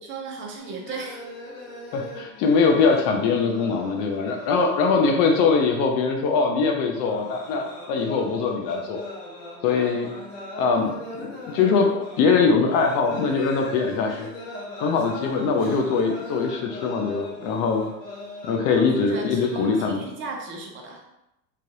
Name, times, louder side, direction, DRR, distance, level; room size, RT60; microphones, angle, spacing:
voice 1, 0.0-1.2 18.7-21.0, right 3 dB, 25° right, 0 dB, 0.6 m, -36 dB
sound 1, 0.6-20.0, left 1 dB, 80° left, 1.1 m, -39 dB
voice 2, 1.9-9.0 9.6-10.1 10.6-11.9 12.2-14.3 14.8-17.9 18.4-20.0, left 5 dB, 45° left, 2 dB, 0.4 m, -22 dB
3.2 x 2.3 x 2.6 m, 0.88 s
supercardioid pair, 115°, 49 cm